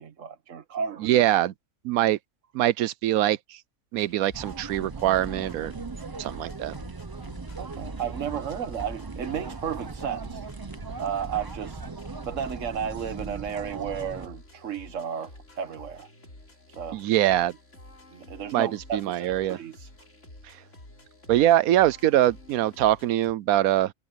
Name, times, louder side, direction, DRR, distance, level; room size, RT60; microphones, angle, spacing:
voice 1, 0.0-1.2 7.6-10.5 11.0-11.8 12.3-16.1 16.7-17.3 18.1-19.9, right 7 dB, 60° right, 1.5 m, -33 dB
voice 2, 1.0-1.5 1.8-2.2 2.5-3.6 3.9-5.7 6.2-6.7 16.9-17.5 18.5-19.6 20.4-20.6 21.3-23.9, right 13 dB, 75° right, 1.0 m, -23 dB
sound 1, 3.9-23.3, left 1 dB, 55° left, 5.4 m, -50 dB
sound 2, 4.3-14.3, right 4 dB, 30° right, 0.4 m, -38 dB
omnidirectional pair, 1.5 m